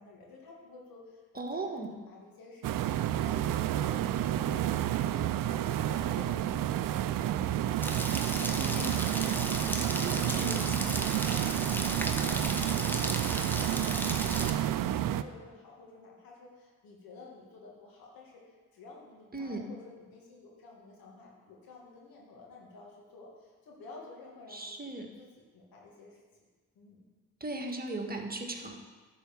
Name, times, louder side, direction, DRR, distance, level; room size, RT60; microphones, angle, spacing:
voice 1, 0.0-10.6 10.8-26.2 26.8-27.0, left 3 dB, 85° left, -2 dB, 2.1 m, -52 dB
voice 2, 1.3-1.9 8.5-8.9 9.9-10.6 19.3-19.7 24.5-25.1 27.4-28.8, right 2 dB, 25° right, 2 dB, 1.6 m, -37 dB
sound 1, 2.6-15.2, right 12 dB, 70° right, 0.5 m, -30 dB
Rain, 7.8-14.5, equal, 5° left, 1.1 m, -36 dB
10.5 x 4.7 x 7.1 m, 1.3 s
supercardioid pair, 50°, 35 cm